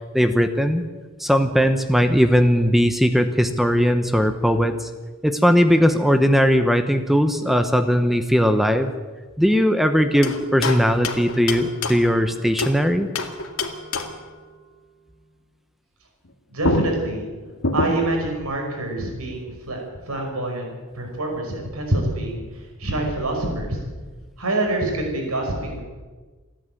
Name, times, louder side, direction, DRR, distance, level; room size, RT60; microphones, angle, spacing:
voice 1, 0.1-0.8 1.2-4.9 5.2-8.9 9.4-13.1, equal, ahead, 8 dB, 1.0 m, -19 dB
sound 1, 10.2-12.8 13.1-14.3 16.2-16.3 16.6-18.3, left 2 dB, 70° left, 2.0 m, -27 dB
voice 2, 16.5-17.3 17.7-20.7 20.9-23.8 24.4-25.8, right 2 dB, 85° right, 1 dB, 5.4 m, -26 dB
28.5 x 10.5 x 9.1 m, 1.3 s
head